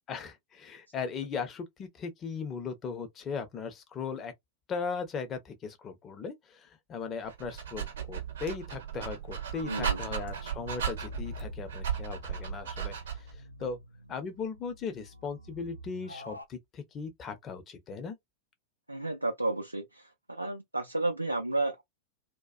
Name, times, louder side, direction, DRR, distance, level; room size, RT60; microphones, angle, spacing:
voice 1, 0.1-4.3 4.7-6.3 6.9-13.0 13.6-13.8 14.1-18.2, left 5 dB, 25° left, 0.7 m, -38 dB
Dog, 7.3-13.4, right 8 dB, 60° right, 0.7 m, -36 dB
sound 1, 9.5-16.5, left 1 dB, 90° left, 0.3 m, -46 dB
voice 2, 9.6-10.0 18.9-21.8, right 2 dB, 85° right, 0.3 m, -32 dB
2.3 x 2.2 x 2.4 m
figure-of-eight pair, 90°, 0 cm